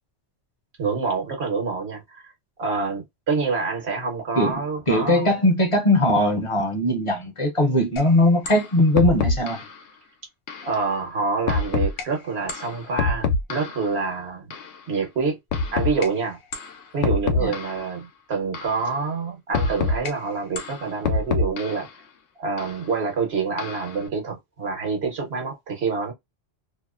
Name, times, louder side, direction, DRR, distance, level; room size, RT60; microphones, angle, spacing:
voice 1, 0.8-2.3 2.6-5.3 10.6-14.5 14.9-15.4 15.7-16.4 16.9-21.9 22.4-26.1, right 4 dB, 70° right, 1.2 m, -27 dB
voice 2, 4.9-9.6 17.4-17.5, left 1 dB, 35° left, 0.6 m, -20 dB
sound 1, 8.0-8.1 8.5-8.6 9.0-9.7 10.5-10.7 11.5-12.0 12.5-13.9 14.5-14.7 15.5-16.1 16.5-16.7 17.0-17.9 18.5-18.8 19.5-20.1 20.6-21.9 22.6-22.7 23.6-24.0, left 4 dB, 90° left, 0.9 m, -25 dB
2.8 x 2.0 x 2.3 m
omnidirectional pair, 1.1 m